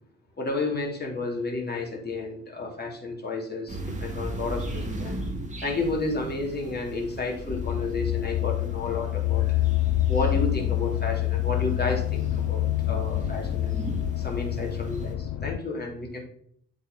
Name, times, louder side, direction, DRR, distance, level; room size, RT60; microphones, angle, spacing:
voice 1, 0.4-5.2 5.6-9.4 10.1-13.8 14.2-16.2, left 3 dB, 25° left, -1 dB, 3.3 m, -31 dB
sound 1, 3.7-15.1, right 1 dB, 20° right, 2.4 m, -37 dB
sound 2, 7.5-15.6, left 15 dB, 50° left, 0.7 m, -27 dB
7.9 x 5.7 x 4.0 m, 0.64 s
hypercardioid pair, 50°, 38 cm